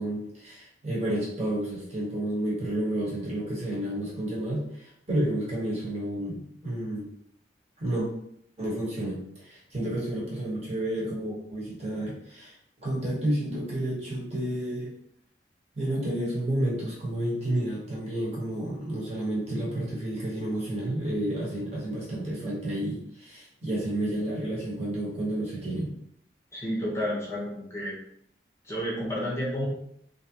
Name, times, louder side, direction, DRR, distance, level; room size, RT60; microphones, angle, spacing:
voice 1, 0.0-7.1 7.8-8.1 8.6-14.9 15.7-25.9, right 1 dB, 40° right, -5 dB, 1.2 m, -31 dB
voice 2, 26.5-28.0 28.6-29.7, equal, 15° left, -5 dB, 0.7 m, -31 dB
3.1 x 2.7 x 2.8 m, 0.70 s
head